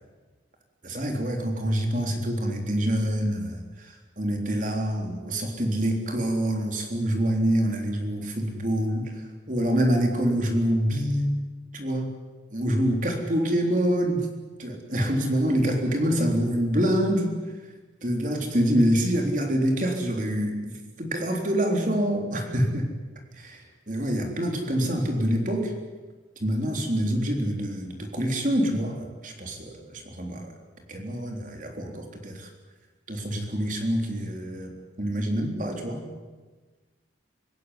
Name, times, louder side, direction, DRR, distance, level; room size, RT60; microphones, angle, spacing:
voice 1, 0.8-9.2 9.5-11.4 11.7-12.2 12.5-14.3 14.6-17.3 18.0-22.9 23.4-25.7 26.4-30.5 30.9-32.5 33.1-34.7 35.0-36.1, equal, 45° right, 3 dB, 3.7 m, -26 dB
25.5 x 16.5 x 9.8 m, 1.3 s
head